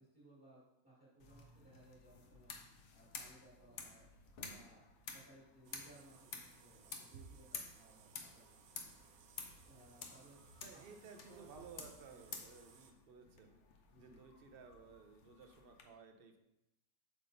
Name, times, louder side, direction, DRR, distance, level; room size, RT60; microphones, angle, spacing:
voice 1, 0.0-2.5 2.9-4.1 4.4-8.6 9.6-10.4 10.7-11.6 12.1-12.2 13.9-14.2, right 1 dB, 5° right, -7 dB, 1.7 m, -63 dB
sound 1, 1.2-15.8, left 5 dB, 60° left, 1.0 m, -53 dB
sound 2, 5.6-12.9, right 6 dB, 80° right, 1.1 m, -63 dB
voice 2, 10.6-13.6 14.0-16.4, right 5 dB, 50° right, 6 dB, 0.8 m, -57 dB
8.2 x 5.9 x 2.6 m, 0.85 s
omnidirectional pair, 1.5 m